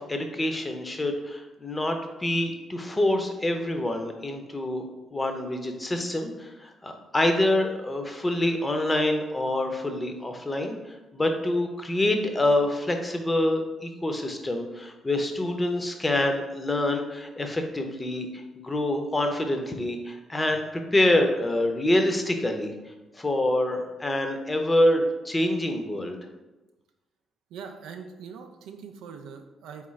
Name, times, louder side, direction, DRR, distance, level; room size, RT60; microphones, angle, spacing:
voice 1, 0.0-4.8 5.1-10.8 11.1-20.6 20.9-22.7 23.1-26.2, left 1 dB, 25° left, 5 dB, 0.7 m, -26 dB
voice 2, 27.5-29.9, right 6 dB, 75° right, 5 dB, 0.3 m, -42 dB
3.7 x 3.6 x 3.1 m, 1.1 s
hypercardioid pair, 45°, 0 cm